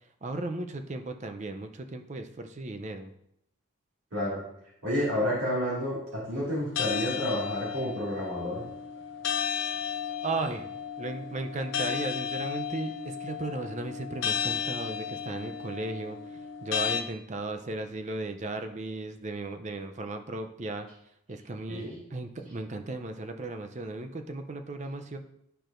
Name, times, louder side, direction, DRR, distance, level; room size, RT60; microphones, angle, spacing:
voice 1, 0.2-3.1 10.2-10.7 11.0-16.2 16.6-20.9 21.3-25.2, right 2 dB, 35° right, 6 dB, 0.5 m, -36 dB
voice 2, 4.1-4.4 4.8-8.6 21.7-22.0, equal, 85° right, -7 dB, 2.2 m, -30 dB
sound 1, 6.8-17.0, left 7 dB, 60° left, 0.5 m, -34 dB
12.0 x 4.6 x 2.6 m, 0.77 s
head